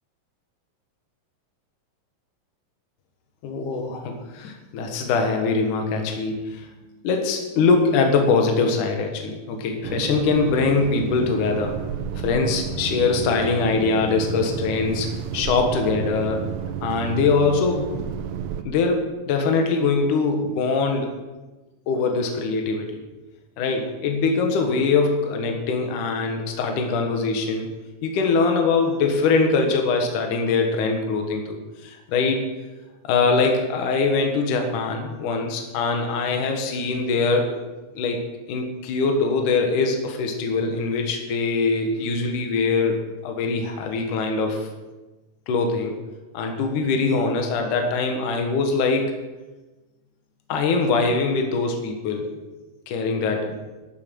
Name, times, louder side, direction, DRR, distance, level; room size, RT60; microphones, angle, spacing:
voice 1, 3.4-6.7 7.0-11.8 12.2-16.5 16.8-18.1 18.7-21.1 21.9-22.9 23.6-27.7 28.0-32.4 33.0-37.6 37.9-38.2 38.5-44.7 45.5-45.9 46.3-49.1 50.5-52.3 52.9-53.6, left 4 dB, 70° left, 3 dB, 2.8 m, -22 dB
sound 1, 9.8-18.6, right 9 dB, 80° right, 2.2 m, -31 dB
13.5 x 8.1 x 6.1 m, 1.1 s
omnidirectional pair, 4.0 m